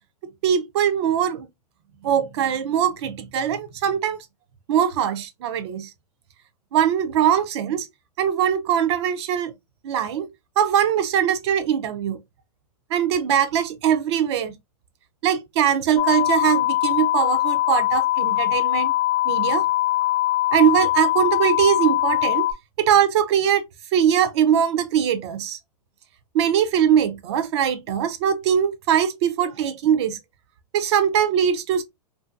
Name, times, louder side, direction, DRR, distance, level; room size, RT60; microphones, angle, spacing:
voice 1, 0.2-1.5 2.0-4.2 4.7-5.9 6.7-7.9 8.2-9.5 9.8-12.2 12.9-14.5 15.2-18.9 19.3-19.7 20.5-22.5 22.8-23.6 23.9-25.6 26.3-30.2 30.7-31.8, right 9 dB, 40° right, 0.5 m, -21 dB
sound 1, 16.0-22.5, left 16 dB, 20° left, 0.5 m, -22 dB
2.6 x 2.6 x 2.3 m
hypercardioid pair, 155°, 21 cm